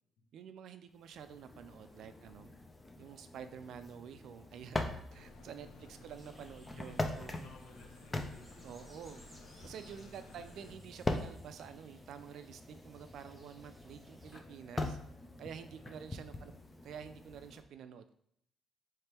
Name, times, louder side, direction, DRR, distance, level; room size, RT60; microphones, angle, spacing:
voice 1, 0.3-2.5 3.0-7.4 8.6-9.2 9.6-15.0 15.4-16.5 16.8-18.1, right 7 dB, 75° right, 9 dB, 0.3 m, -49 dB
sound 1, 1.0-17.6, left 2 dB, 20° left, 0.5 m, -43 dB
sound 2, 5.1-10.7, left 2 dB, 90° left, 0.5 m, -57 dB
voice 2, 5.7-6.2 6.8-8.6 10.0-10.1 15.8-16.0 16.3-16.6, left 2 dB, 75° left, 2 dB, 0.9 m, -59 dB
sound 3, 6.1-14.4, right 1 dB, 10° right, 1.0 m, -63 dB
3.4 x 3.2 x 4.4 m, 0.71 s
cardioid pair, 90°, 0 cm